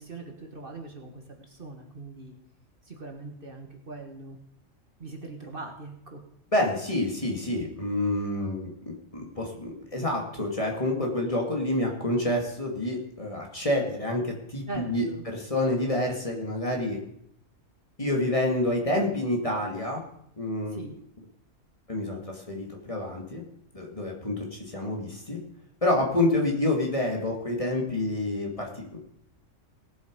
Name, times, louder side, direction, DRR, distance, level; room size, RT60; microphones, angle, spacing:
voice 1, 0.0-2.3 2.8-4.4 5.0-6.2 14.7-15.3 20.7-20.9, right 3 dB, 45° right, 3 dB, 1.7 m, -41 dB
voice 2, 6.5-17.0 18.0-20.0 20.4-20.8 21.9-23.4 23.7-25.4 25.8-29.0, left 1 dB, 25° left, 0 dB, 2.2 m, -28 dB
18.0 x 7.8 x 5.2 m, 0.71 s
omnidirectional pair, 1.4 m